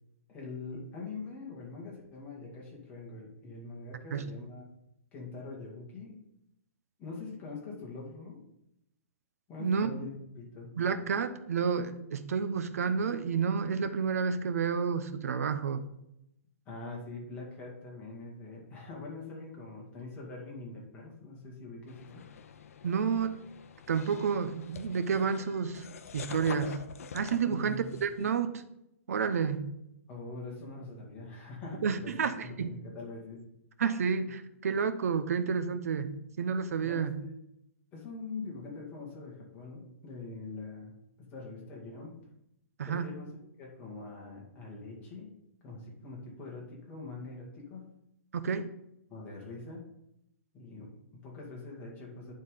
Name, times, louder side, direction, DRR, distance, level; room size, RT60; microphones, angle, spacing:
voice 1, 0.3-4.6 5.1-6.1 7.0-8.4 9.5-10.1 10.4-10.7 16.7-22.2 27.5-28.0 30.1-32.1 32.4-33.4 36.8-37.3 37.9-40.9 41.2-42.2 42.8-43.3 43.6-45.3 45.6-47.9 49.1-49.8 50.5-52.3, left 3 dB, 20° left, -2 dB, 2.1 m, -43 dB
voice 2, 9.6-9.9 10.8-15.8 22.8-23.4 23.9-25.9 26.1-26.8 27.1-28.6 29.1-29.7 31.8-32.7 33.8-36.1 36.4-37.1 42.8-43.1 48.4-48.7, right 6 dB, 75° right, 11 dB, 0.8 m, -30 dB
sound 1, 21.9-28.4, left 6 dB, 70° left, 0.6 m, -46 dB
9.5 x 3.9 x 5.1 m, 0.81 s
hypercardioid pair, 155°, 8 cm